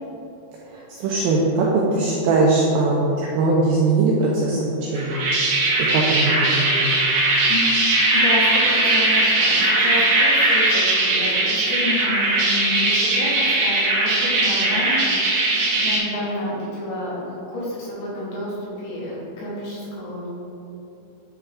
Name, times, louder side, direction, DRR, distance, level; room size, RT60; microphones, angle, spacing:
voice 1, 1.0-5.2 5.8-6.9, right 3 dB, 90° right, -3 dB, 2.5 m, -20 dB
sound 1, 4.9-16.0, right 2 dB, 75° right, 3.2 m, -19 dB
voice 2, 7.4-7.8 8.1-15.2 15.7-20.3, left 1 dB, 70° left, -7 dB, 3.3 m, -30 dB
9.9 x 3.5 x 3.4 m, 3.0 s
omnidirectional pair, 5.7 m